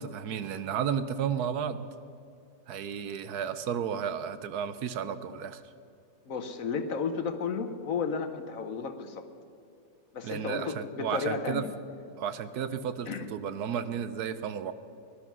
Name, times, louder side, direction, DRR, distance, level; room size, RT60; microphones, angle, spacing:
voice 1, 0.0-1.9 2.7-5.6 10.2-11.7 12.2-14.7, right 8 dB, 70° right, 13 dB, 1.1 m, -33 dB
voice 2, 6.3-9.3 10.1-11.7 13.1-13.3, left 5 dB, 55° left, 8 dB, 1.2 m, -33 dB
19.0 x 11.5 x 6.1 m, 2.6 s
omnidirectional pair, 1.8 m